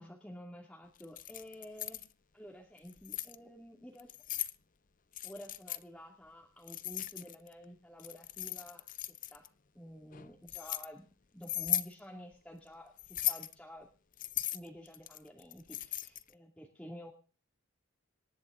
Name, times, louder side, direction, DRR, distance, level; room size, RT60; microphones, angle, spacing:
voice 1, 0.0-2.0 2.3-4.1 5.2-9.5 9.7-13.9 14.5-17.1, equal, 5° left, -1 dB, 2.5 m, -50 dB
Keys jangling, 1.0-2.1 2.8-3.4 4.0-4.6 5.1-5.8 6.7-7.5 8.0-9.5 10.1-10.9 11.4-11.9 13.0-13.5 14.2-16.3, left 14 dB, 40° left, 0.7 m, -37 dB
26.0 x 11.5 x 3.8 m, 0.37 s
head